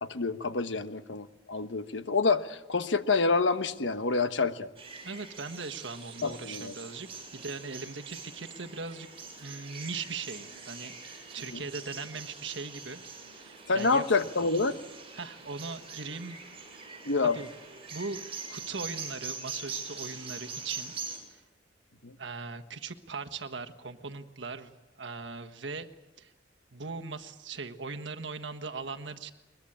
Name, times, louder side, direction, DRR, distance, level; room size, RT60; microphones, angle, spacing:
voice 1, 0.0-4.7 6.2-6.7 11.5-11.6 13.7-14.8 17.1-17.4 22.0-22.2, left 4 dB, 75° left, 10 dB, 1.3 m, -27 dB
sound 1, 4.8-21.2, right 4 dB, 30° right, 6.5 m, -43 dB
voice 2, 5.0-9.1 9.3-13.0 13.4-14.0 15.1-16.4 17.2-17.5 17.9-20.9 21.3-21.4 22.2-25.9 26.2-26.3 26.7-29.3, right 4 dB, 70° right, 6 dB, 1.5 m, -39 dB
22.0 x 21.5 x 8.8 m, 1.1 s
head